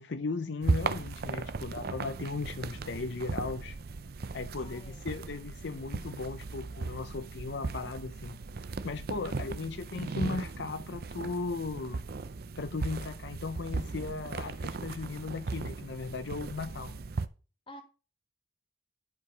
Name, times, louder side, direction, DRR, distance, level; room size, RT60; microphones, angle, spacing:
voice 1, 0.0-3.8 4.3-8.4 8.8-12.1 12.6-17.0, left 3 dB, 65° left, 0.6 m, -37 dB
sound 1, 0.6-17.3, right 3 dB, 55° right, 0.6 m, -37 dB
voice 2, 4.6-5.1 9.2-9.9 17.7-17.8, left 1 dB, 30° left, 1.7 m, -51 dB
11.0 x 4.7 x 5.0 m
head